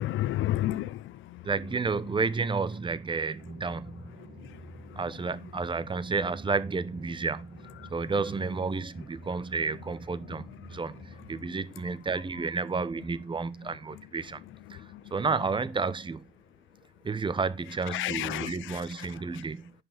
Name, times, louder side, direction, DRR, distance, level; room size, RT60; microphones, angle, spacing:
voice 1, 0.0-1.4 14.8-14.9 17.9-19.1, left 14 dB, 80° left, 0.6 m, -31 dB
voice 2, 1.4-4.3 5.0-10.4 10.7-11.0 11.3-14.4 14.7-14.8 15.1-16.3 17.0-19.7, right 4 dB, 25° right, 0.9 m, -31 dB
sound 1, 3.4-11.4, right 1 dB, 50° right, 3.7 m, -48 dB
9.8 x 5.5 x 5.1 m
cardioid pair, 90°, 20 cm